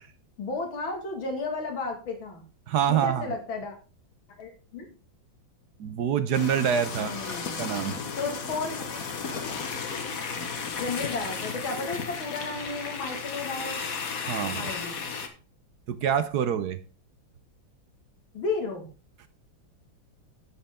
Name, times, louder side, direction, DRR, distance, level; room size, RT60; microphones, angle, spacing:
voice 1, 0.4-2.4 2.9-3.7 4.4-4.9 6.9-7.6 8.2-9.0 10.8-13.8 14.5-15.1 18.3-18.9, left 3 dB, 85° left, 3 dB, 2.9 m, -33 dB
voice 2, 2.7-3.3 5.8-8.0 14.3-14.7 15.9-16.8, right 8 dB, 65° right, 11 dB, 1.1 m, -26 dB
sound 1, 6.3-15.3, left 5 dB, 50° left, 1.5 m, -34 dB
11.5 x 7.9 x 3.6 m, 0.36 s
omnidirectional pair, 2.1 m